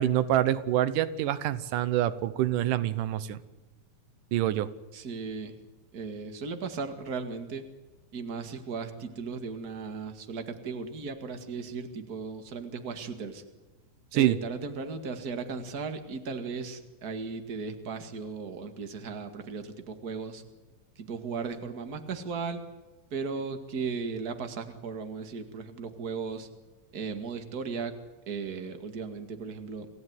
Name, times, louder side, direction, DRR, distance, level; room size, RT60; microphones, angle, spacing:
voice 1, 0.0-3.4 4.3-4.7 14.1-14.4, right 12 dB, 90° right, 15 dB, 2.6 m, -26 dB
voice 2, 4.9-5.5 5.9-7.6 8.1-13.4 14.1-20.4 21.0-22.6 23.1-26.5 26.9-27.9 28.3-29.9, right 5 dB, 35° right, 7 dB, 2.1 m, -36 dB
27.0 x 16.5 x 9.6 m, 1.2 s
omnidirectional pair, 3.6 m